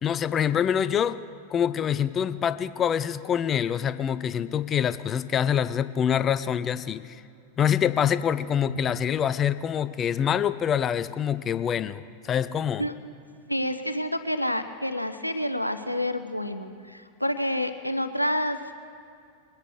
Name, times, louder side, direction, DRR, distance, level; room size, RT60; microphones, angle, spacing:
voice 1, 0.0-1.2 1.5-7.2 7.6-12.9, left 8 dB, 25° left, 15 dB, 0.5 m, -25 dB
voice 2, 13.5-18.7, left 1 dB, 90° left, 9 dB, 0.7 m, -28 dB
23.0 x 10.5 x 4.9 m, 2.4 s
figure-of-eight pair, 90°, 0 cm